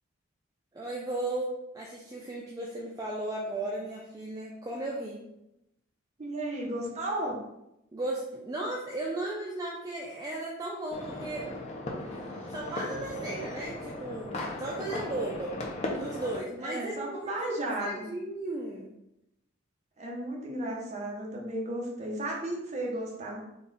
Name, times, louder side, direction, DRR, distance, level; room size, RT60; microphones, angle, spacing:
voice 1, 0.7-5.2 7.9-11.5 12.5-15.6 15.9-17.3 17.8-18.9, right 2 dB, 20° right, -3 dB, 0.4 m, -35 dB
voice 2, 6.2-7.4 16.6-18.1 20.0-23.4, right 1 dB, 35° right, -2 dB, 0.8 m, -34 dB
sound 1, 10.9-16.4, left 2 dB, 35° left, 0.6 m, -37 dB
3.7 x 2.3 x 4.0 m, 0.85 s
head